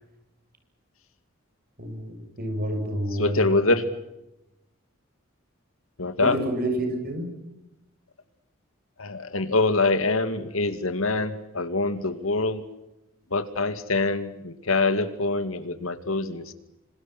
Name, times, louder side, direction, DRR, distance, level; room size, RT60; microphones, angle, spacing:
voice 1, 1.8-3.5 6.2-7.3, right 1 dB, 45° right, 6 dB, 7.8 m, -29 dB
voice 2, 3.2-3.9 6.0-6.4 9.0-12.6 13.3-16.5, left 3 dB, 85° left, 10 dB, 2.5 m, -25 dB
26.5 x 26.5 x 6.2 m, 0.93 s
head